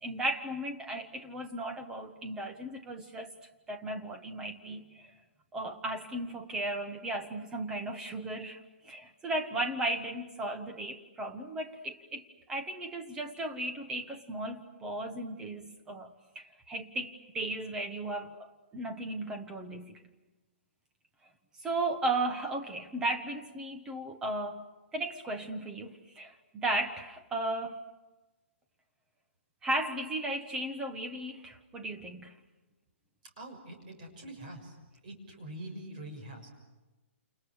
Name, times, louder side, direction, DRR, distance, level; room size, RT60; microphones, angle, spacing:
voice 1, 0.0-3.3 3.7-5.1 5.5-18.5 18.7-20.0 21.6-24.6 24.9-27.8 29.6-32.3, right 1 dB, 10° right, 6 dB, 1.3 m, -35 dB
voice 2, 33.4-34.7 35.0-36.5, right 1 dB, 35° right, 3 dB, 6.5 m, -44 dB
29.5 x 29.0 x 6.4 m, 1.1 s
hypercardioid pair, 175°, 7 cm